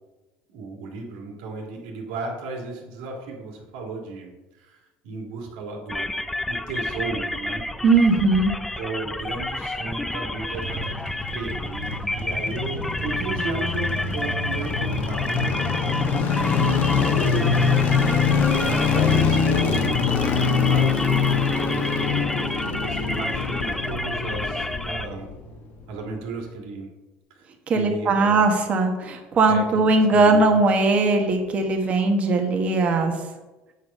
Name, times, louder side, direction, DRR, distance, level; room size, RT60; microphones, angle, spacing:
voice 1, 0.5-6.1 6.4-7.6 8.8-15.6 17.8-18.4 18.7-22.4 22.7-25.3 25.9-26.9 27.3-27.4 27.7-28.5 29.5-29.8 30.1-30.6, right 3 dB, 90° right, 1 dB, 2.1 m, -35 dB
sound 1, 5.9-25.1, left 1 dB, 5° left, 0.4 m, -30 dB
voice 2, 7.8-8.5 27.7-33.1, right 3 dB, 35° right, 3 dB, 1.3 m, -19 dB
sound 2, 10.3-25.5 25.8-25.9, left 5 dB, 55° left, 1.2 m, -24 dB
8.1 x 4.9 x 5.4 m, 1.1 s
cardioid pair, 135°, 4 cm